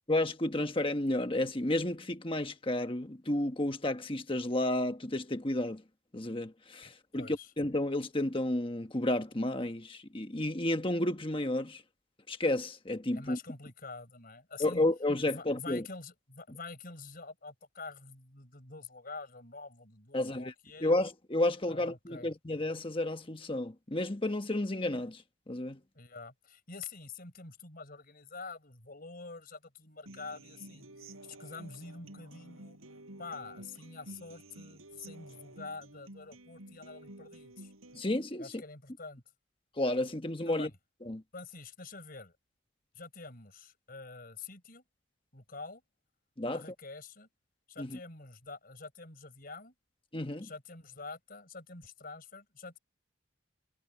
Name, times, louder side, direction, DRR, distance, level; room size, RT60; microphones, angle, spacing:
voice 1, 0.1-5.8 6.1-11.8 12.3-13.4 14.6-15.8 20.1-20.5 20.8-25.2 25.5-25.8 37.9-38.6 39.8-40.7 41.1-41.2 46.4-46.6 47.8-48.0 50.1-50.5, left 1 dB, 25° left, 1.3 m, -31 dB
voice 2, 7.1-7.5 13.1-14.8 15.3-20.9 21.7-22.3 25.9-32.8 33.2-37.7 38.4-39.2 40.4-40.7 41.3-42.4 42.9-44.8 45.3-45.8 46.5-47.3 47.7-49.7 50.4-52.8, left 4 dB, 45° left, 4.8 m, -47 dB
Human voice / Acoustic guitar, 30.1-38.0, right 1 dB, 90° right, 6.1 m, -51 dB
head